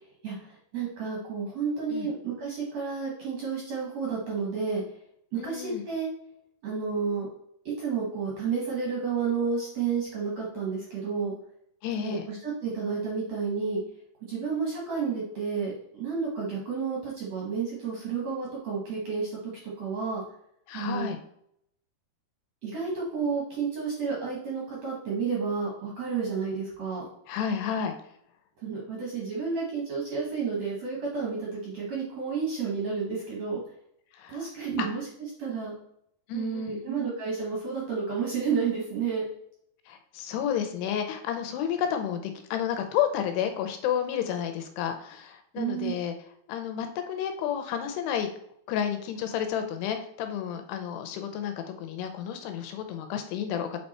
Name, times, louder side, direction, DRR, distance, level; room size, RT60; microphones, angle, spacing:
voice 1, 0.2-4.8 5.3-6.1 6.6-7.3 7.8-11.3 12.0-13.8 14.3-19.3 19.8-20.2 20.7-21.1 22.6-27.1 28.6-33.6 34.3-35.1 35.4-35.7 36.3-39.2 45.5-45.9, right 5 dB, 55° right, -3 dB, 1.9 m, -31 dB
voice 2, 5.4-5.8 11.8-12.2 20.7-21.2 27.3-27.9 34.1-34.4 34.8-34.9 36.3-36.8 39.9-46.1 46.5-48.3 48.7-53.8, left 9 dB, 80° left, 7 dB, 2.8 m, -31 dB
7.2 x 4.5 x 4.2 m, 0.72 s
omnidirectional pair, 4.8 m